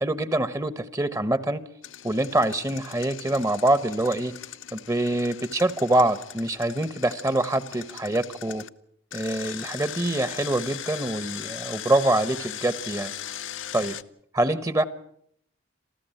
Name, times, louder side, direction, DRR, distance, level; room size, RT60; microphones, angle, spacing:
voice 1, 0.0-1.6 2.0-4.3 4.7-8.6 9.1-13.1 13.7-14.0 14.3-14.8, right 1 dB, 15° right, 14 dB, 0.9 m, -25 dB
Engine, 1.8-8.7 9.1-14.0, left 10 dB, 85° left, 0.9 m, -39 dB
27.5 x 15.0 x 8.9 m, 0.69 s
head